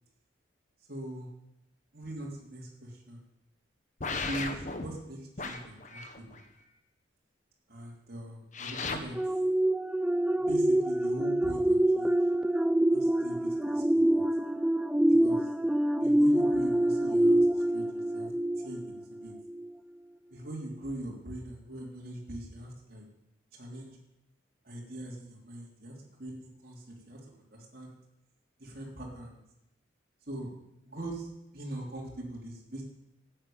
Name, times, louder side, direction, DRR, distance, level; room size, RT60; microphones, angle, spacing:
voice 1, 0.9-1.3 1.9-3.2 4.3-6.4 7.7-9.2 10.4-12.2 12.9-14.2 15.2-15.5 16.0-18.3 18.6-18.8 19.1-19.3 20.3-23.0 23.5-24.0 24.6-27.2 27.5-28.0 28.6-29.4 30.3-30.5 30.9-31.3 31.5-32.8, right 1 dB, 50° right, -3 dB, 3.5 m, -41 dB
sound 1, 4.0-4.9 5.4-6.4 8.5-9.0, left 3 dB, 40° left, 1.2 m, -35 dB
sound 2, 9.1-19.0 19.5-19.7, right 1 dB, 5° right, 0.4 m, -26 dB
13.5 x 9.0 x 8.8 m, 0.85 s
head